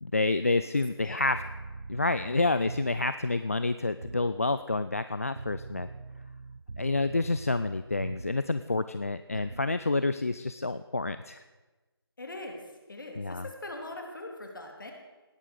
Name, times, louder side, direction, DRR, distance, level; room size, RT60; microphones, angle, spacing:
voice 1, 0.0-1.4 1.9-5.9 6.8-11.4 13.2-13.4, left 3 dB, 35° left, 12 dB, 0.4 m, -28 dB
voice 2, 1.0-1.3 9.3-9.4 12.2-12.6 12.9-14.9, left 2 dB, 55° left, 2 dB, 3.1 m, -41 dB
sound 1, 1.3-3.2 4.0-4.4 5.4-8.5 9.3-9.7, right 3 dB, 85° right, 0.5 m, -42 dB
18.0 x 9.0 x 6.6 m, 1.2 s
figure-of-eight pair, 165°, 13 cm